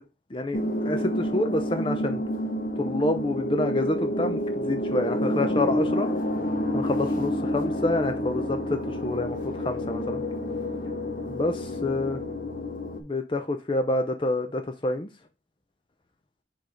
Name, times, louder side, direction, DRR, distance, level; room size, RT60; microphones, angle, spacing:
voice 1, 0.3-2.2 2.8-6.1 6.7-10.2 11.3-12.2 13.0-15.1, left 2 dB, 25° left, 0.5 m, -28 dB
sound 1, 0.5-13.0, left 1 dB, 45° left, 0.9 m, -29 dB
5.3 x 3.9 x 4.9 m
head